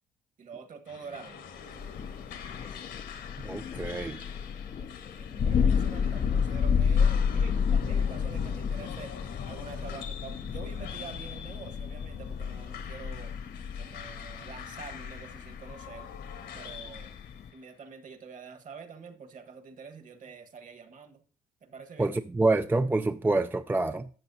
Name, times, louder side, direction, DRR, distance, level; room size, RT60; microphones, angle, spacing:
voice 1, 0.4-1.5 4.8-13.3 13.7-16.1 16.5-17.1 17.5-21.2 21.6-22.1, right 5 dB, 45° right, 1.5 m, -46 dB
sound 1, 0.9-17.7, left 7 dB, 70° left, 1.5 m, -46 dB
Thunder, 1.7-17.5, left 6 dB, 40° left, 0.5 m, -31 dB
voice 2, 3.4-4.2 22.0-24.1, right 2 dB, 10° right, 0.4 m, -27 dB
12.5 x 7.3 x 2.7 m
supercardioid pair, 70°, 18 cm